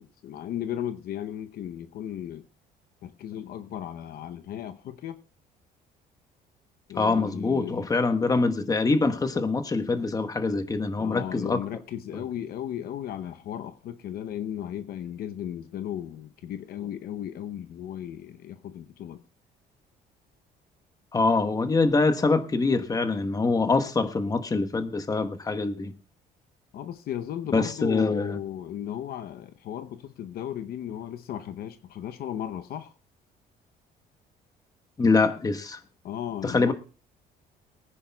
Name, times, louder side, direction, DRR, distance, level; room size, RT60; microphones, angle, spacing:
voice 1, 0.0-2.4 3.0-5.2 6.9-7.9 11.0-19.2 26.7-32.9 36.0-36.7, left 10 dB, 65° left, 0.8 m, -35 dB
voice 2, 7.0-11.6 21.1-25.9 27.5-28.4 35.0-35.8 36.4-36.7, left 3 dB, 20° left, 1.2 m, -24 dB
23.0 x 10.0 x 2.3 m
cardioid pair, 110°, 17 cm